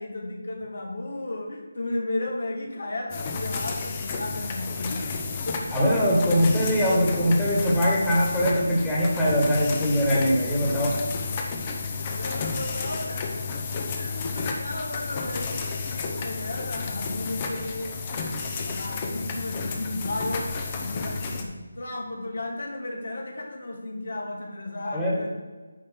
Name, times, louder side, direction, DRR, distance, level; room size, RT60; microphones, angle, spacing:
voice 1, 0.0-5.2 5.5-5.6 10.1-10.2 11.9-13.4 13.8-18.4 18.7-25.3, left 2 dB, 70° left, 1 dB, 2.0 m, -34 dB
sound 1, 3.1-21.4, left 4 dB, 25° left, 1.0 m, -32 dB
voice 2, 5.7-11.0 24.9-25.1, equal, 5° left, -8 dB, 1.9 m, -22 dB
9.7 x 6.4 x 3.8 m, 1.3 s
figure-of-eight pair, 160°, 0 cm